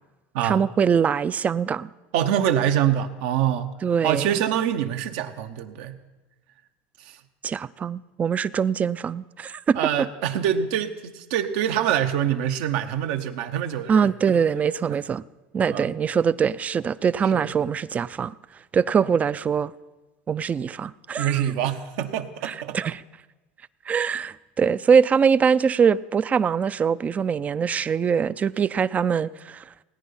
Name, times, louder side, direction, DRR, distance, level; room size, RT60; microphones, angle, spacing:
voice 1, 0.4-1.9 3.8-4.3 7.4-9.8 13.9-15.2 15.5-18.3 18.7-19.7 20.3-21.3 22.4-23.0 23.9-29.7, right 6 dB, 25° right, 0.3 m, -23 dB
voice 2, 2.1-3.7 4.0-6.0 7.0-7.2 9.7-14.4 14.9-15.0 15.7-16.0 17.2-17.5 21.2-22.8, right 10 dB, 75° right, 0.9 m, -25 dB
18.5 x 9.4 x 5.7 m
supercardioid pair, 115°, 6 cm